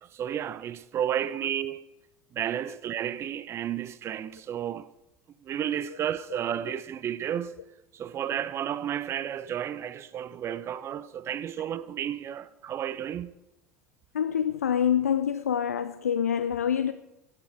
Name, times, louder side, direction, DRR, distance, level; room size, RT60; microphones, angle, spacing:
voice 1, 0.1-1.9 2.3-4.9 5.4-7.6 7.9-13.4, right 10 dB, 35° right, 0.5 m, -32 dB
voice 2, 14.1-16.9, left 8 dB, 75° left, 0.4 m, -26 dB
16.0 x 9.6 x 4.6 m
figure-of-eight pair, 70°, 8 cm